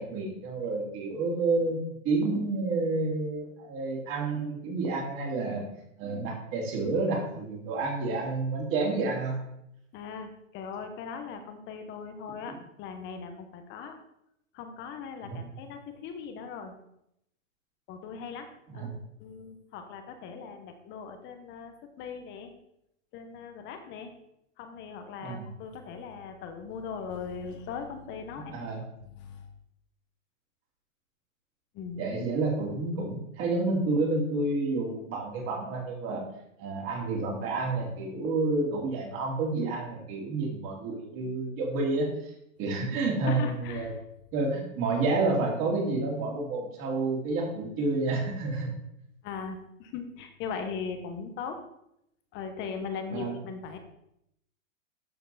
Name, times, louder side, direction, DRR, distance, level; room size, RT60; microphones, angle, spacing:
voice 1, 0.0-1.8 2.0-5.7 6.0-9.4 12.5-12.6 15.3-15.4 18.7-19.0 25.2-25.5 28.5-28.8 32.0-36.2 36.6-42.3 42.6-43.9 44.3-48.7 53.1-53.3, right 3 dB, 30° right, -1 dB, 2.8 m, -29 dB
voice 2, 9.9-14.0 14.5-16.7 17.9-18.9 19.2-22.5 23.1-24.1 24.6-28.6 29.0-29.5 31.7-32.0 43.3-44.0 49.2-51.6 52.3-53.8, left 6 dB, 30° left, 7 dB, 1.1 m, -39 dB
12.5 x 4.5 x 4.1 m, 0.78 s
hypercardioid pair, 135°, 40 cm